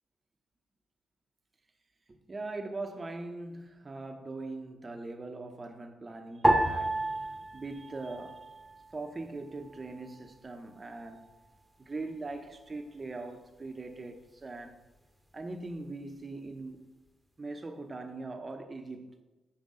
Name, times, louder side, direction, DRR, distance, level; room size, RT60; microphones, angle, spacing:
voice 1, 2.1-8.5 8.9-11.3 11.8-14.8 15.3-16.8 17.4-19.2, right 2 dB, 30° right, 0.7 m, -41 dB
sound 1, 6.4-9.0 9.2-10.1 10.8-11.2, right 1 dB, 5° right, 0.9 m, -31 dB
5.5 x 4.6 x 3.7 m
supercardioid pair, 65°, 0 cm